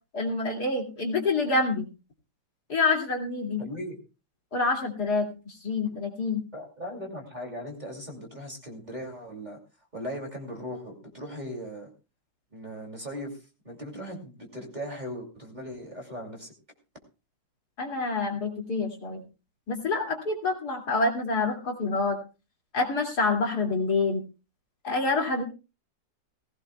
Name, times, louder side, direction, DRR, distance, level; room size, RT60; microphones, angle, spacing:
voice 1, 0.1-1.8 2.7-3.6 4.5-6.4 17.8-19.2 19.7-22.2 22.7-24.2 24.8-25.4, left 3 dB, 55° left, 1 dB, 3.0 m, -27 dB
voice 2, 3.6-4.0 6.5-9.6 9.9-11.9 12.5-13.4 13.6-16.5, equal, 25° right, 1 dB, 2.7 m, -38 dB
19.0 x 16.5 x 2.3 m, 0.30 s
omnidirectional pair, 2.0 m